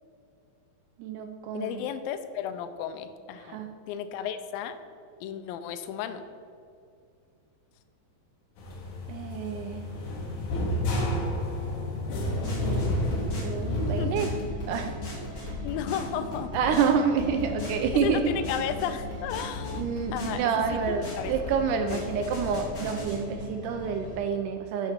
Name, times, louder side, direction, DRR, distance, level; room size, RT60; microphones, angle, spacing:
voice 1, 1.0-1.9 3.4-3.7 9.1-9.8 12.4-14.3 14.7-15.0 15.4-15.6 16.5-18.3 19.7-24.9, right 6 dB, 80° right, 6 dB, 1.8 m, -28 dB
voice 2, 1.5-3.6 3.9-4.8 5.2-6.2 13.8-14.3 15.2-15.4 15.6-16.6 18.0-19.9 20.1-20.8 21.2-21.3 21.9-22.0, left 8 dB, 85° left, 10 dB, 2.4 m, -33 dB
sound 1, 8.6-14.0, left 1 dB, 65° left, 2.7 m, -30 dB
sound 2, 12.2-24.2, left 2 dB, 35° left, 1.5 m, -37 dB
9.6 x 5.9 x 5.7 m, 2.4 s
omnidirectional pair, 4.1 m